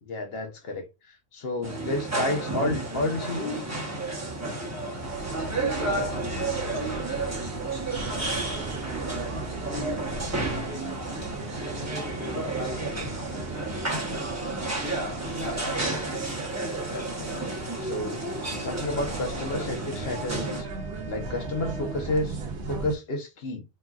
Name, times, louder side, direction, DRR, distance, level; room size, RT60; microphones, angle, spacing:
voice 1, 0.0-3.6 16.9-17.4 17.8-18.2 18.6-20.7 21.1-23.6, left 2 dB, 70° left, 1.0 m, -31 dB
Restaurant Lightly Busy, 1.6-20.6, right 2 dB, 15° right, 0.9 m, -31 dB
sound 1, 5.0-23.0, right 3 dB, 85° right, 0.9 m, -39 dB
voice 2, 8.1-8.9 9.5-10.0 10.3-12.2 12.6-13.9, right 2 dB, 50° right, 1.4 m, -47 dB
3.1 x 2.4 x 2.3 m
omnidirectional pair, 1.1 m